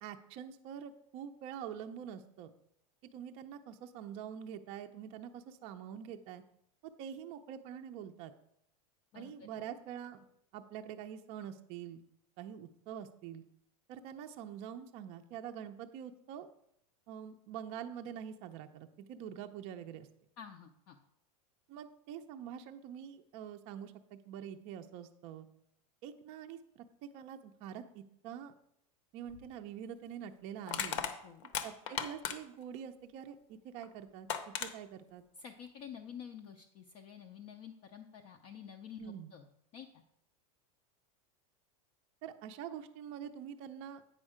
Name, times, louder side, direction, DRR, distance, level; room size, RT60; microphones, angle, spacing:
voice 1, 0.0-2.5 3.1-6.4 6.8-8.3 9.1-10.3 10.5-12.0 12.4-13.4 13.9-16.5 17.1-20.1 21.7-25.5 26.0-26.8 27.1-28.5 29.1-31.0 31.6-35.2 39.0-39.3 42.2-44.1, right 9 dB, 30° right, 6 dB, 0.5 m, -45 dB
voice 2, 9.1-9.6 20.4-21.0 30.9-31.5 35.4-39.5 39.7-40.0, left 8 dB, 30° left, 4 dB, 0.5 m, -50 dB
Crushing, 29.3-29.5 30.7-32.6 33.8-33.9 34.3-34.7, left 8 dB, 55° left, 0.8 m, -36 dB
8.7 x 5.4 x 4.9 m, 0.75 s
supercardioid pair, 170°, 19 cm